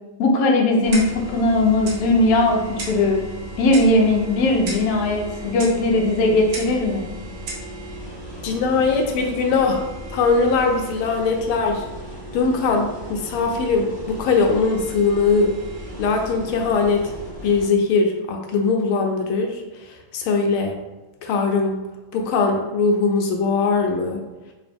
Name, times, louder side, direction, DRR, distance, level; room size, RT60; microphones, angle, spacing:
voice 1, 0.2-3.2 3.6-7.1, left 2 dB, 70° left, 1 dB, 0.9 m, -19 dB
sound 1, 0.8-17.7, right 1 dB, 5° right, 0.8 m, -36 dB
Clock, 0.9-1.3 1.9-2.0 2.8-3.1 3.7-4.0 4.7-4.9 5.6-5.8 6.5-6.8 7.5-7.7, right 2 dB, 75° right, 1.7 m, -33 dB
voice 2, 8.4-9.8 10.1-11.8 12.3-15.5 16.0-17.1 17.4-20.8 21.2-21.8 22.1-24.2, left 4 dB, 85° left, 3 dB, 1.5 m, -21 dB
3.9 x 2.6 x 3.4 m, 1.1 s
omnidirectional pair, 2.3 m